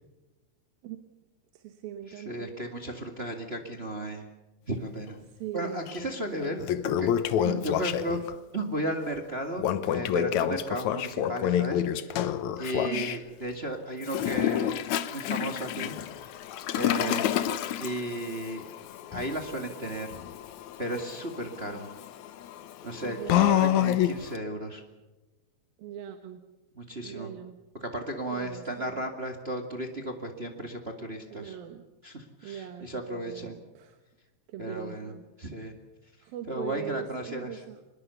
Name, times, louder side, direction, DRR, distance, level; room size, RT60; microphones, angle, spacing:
voice 1, 1.5-2.6 5.3-5.9 6.3-6.7 12.8-13.1 17.0-17.3 21.6-21.8 23.0-23.5 25.8-26.4 27.0-27.6 28.3-29.1 31.3-31.9 32.4-34.0 34.5-35.7 36.2-37.8, right 10 dB, 70° right, 7 dB, 2.9 m, -41 dB
voice 2, 2.2-4.3 4.7-5.2 5.5-6.6 7.0-7.1 7.4-8.2 8.5-12.3 12.6-14.8 15.1-16.3 16.8-17.3 17.8-18.6 19.1-20.2 20.8-21.9 22.8-24.8 26.8-27.3 27.8-31.5 32.0-33.5 34.6-35.1 35.4-35.7 36.5-37.5, right 1 dB, 25° right, 4 dB, 1.3 m, -34 dB
Toilet flush, 5.9-6.0 6.4-8.3 9.6-13.2 14.0-24.4, left 11 dB, 70° left, 1.8 m, -29 dB
24.5 x 21.0 x 7.0 m, 1.1 s
omnidirectional pair, 4.4 m